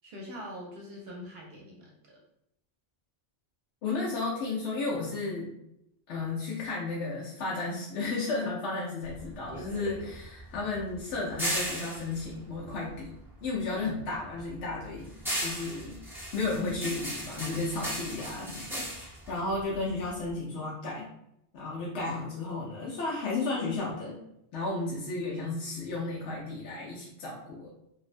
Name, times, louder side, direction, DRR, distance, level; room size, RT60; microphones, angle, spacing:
voice 1, 0.0-2.2, equal, 70° right, -3 dB, 0.8 m, -43 dB
voice 2, 3.8-5.5 6.1-13.1 13.4-15.1 15.4-16.0 16.3-21.1 21.5-24.2 24.5-27.7, left 3 dB, 80° left, -5 dB, 0.8 m, -33 dB
sound 1, 9.0-13.5 13.9-20.3, right 1 dB, 5° right, 0.4 m, -37 dB
2.5 x 2.1 x 2.4 m, 0.79 s
omnidirectional pair, 1.1 m